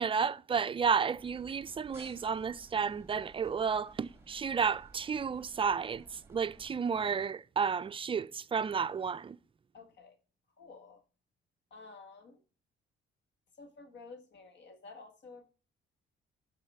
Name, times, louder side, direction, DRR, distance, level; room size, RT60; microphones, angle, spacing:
voice 1, 0.0-9.4, right 6 dB, 25° right, 0.4 m, -32 dB
sound 1, 1.1-7.3, right 3 dB, 10° right, 1.7 m, -57 dB
voice 2, 9.7-10.2 10.6-11.0 11.7-12.4 13.6-15.5, left 4 dB, 60° left, 1.7 m, -52 dB
12.0 x 4.1 x 4.2 m
cardioid pair, 90°, 20 cm